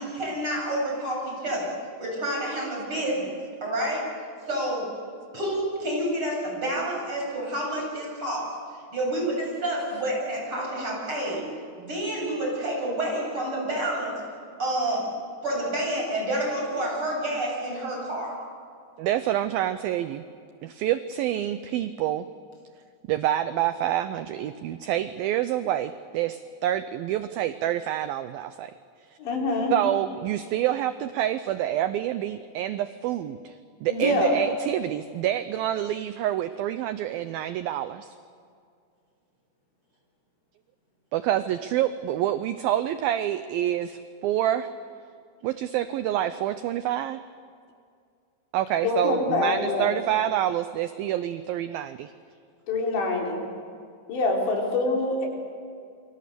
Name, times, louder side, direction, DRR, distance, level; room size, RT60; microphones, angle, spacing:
voice 1, 0.0-4.2 4.5-4.9 5.3-8.5 8.9-11.5 11.8-14.2 14.6-15.1 15.4-18.4, right 1 dB, 30° right, -2 dB, 8.3 m, -29 dB
voice 2, 19.0-20.2 20.6-22.3 23.1-28.7 29.7-38.1 41.1-44.7 45.4-47.2 48.5-52.1, right 12 dB, 80° right, 11 dB, 2.2 m, -27 dB
voice 3, 29.2-29.7 33.9-34.4 48.8-49.9 52.7-53.4 54.1-55.3, left 2 dB, 90° left, -1 dB, 6.3 m, -25 dB
28.0 x 25.0 x 6.9 m, 2.3 s
omnidirectional pair, 4.9 m